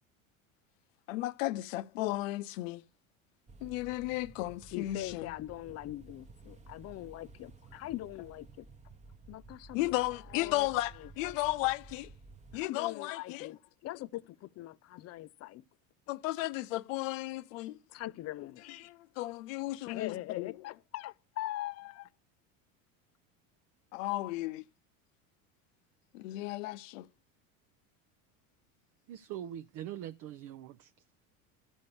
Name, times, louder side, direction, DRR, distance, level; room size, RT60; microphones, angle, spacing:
voice 1, 1.1-2.8 3.6-5.3 9.7-12.1 12.5-13.5 16.1-17.8 18.8-20.5 23.9-24.6 26.1-27.1, left 18 dB, 75° left, 0.7 m, -34 dB
sound 1, 3.5-12.7, right 3 dB, 20° right, 1.0 m, -54 dB
voice 2, 4.7-8.7 9.3-9.9 10.3-11.1 12.5-15.6 17.9-18.9 19.9-22.1, left 15 dB, 40° left, 0.6 m, -42 dB
voice 3, 29.1-30.9, right 11 dB, 50° right, 0.6 m, -42 dB
13.5 x 5.3 x 6.8 m
hypercardioid pair, 90°, 40 cm